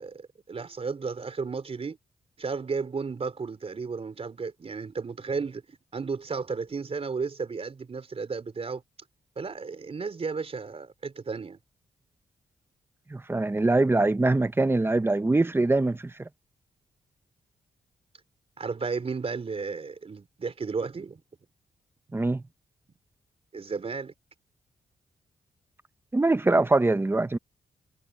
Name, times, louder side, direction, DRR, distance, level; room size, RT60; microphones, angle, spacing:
voice 1, 0.0-2.0 2.4-8.8 9.4-11.6 18.6-21.2 23.5-24.1, right 4 dB, 40° right, 4.1 m, -33 dB
voice 2, 13.1-16.3 22.1-22.4 26.1-27.4, right 2 dB, 15° right, 0.9 m, -23 dB
cardioid pair, 110°, 15 cm